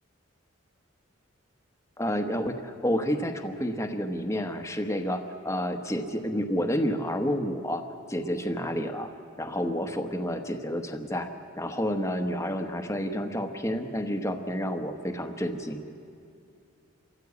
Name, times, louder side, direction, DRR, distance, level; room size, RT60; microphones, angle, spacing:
voice 1, 2.0-7.8 8.1-11.3 11.6-15.8, equal, 15° left, 6 dB, 1.1 m, -30 dB
27.5 x 14.5 x 8.4 m, 2.5 s
head